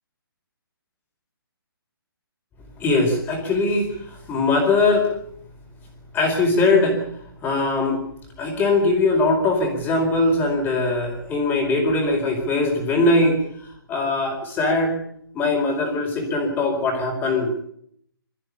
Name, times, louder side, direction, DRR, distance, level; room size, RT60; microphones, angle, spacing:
voice 1, 2.8-5.1 6.1-7.0 7.4-8.0 8.4-13.4 13.9-15.0 15.3-17.7, left 2 dB, 15° left, 2 dB, 4.5 m, -21 dB
23.5 x 14.0 x 8.3 m, 0.68 s
hypercardioid pair, 145°, 13 cm